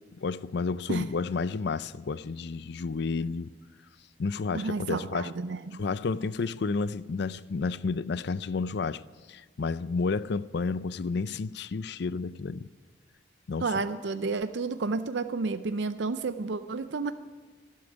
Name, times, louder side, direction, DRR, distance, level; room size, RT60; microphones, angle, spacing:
voice 1, 0.2-3.5 4.2-5.3 5.7-9.0 9.3-12.7 13.5-13.7, left 4 dB, 60° left, 0.4 m, -31 dB
voice 2, 4.5-5.8 13.6-17.1, right 4 dB, 65° right, 0.5 m, -31 dB
12.0 x 12.0 x 9.8 m
head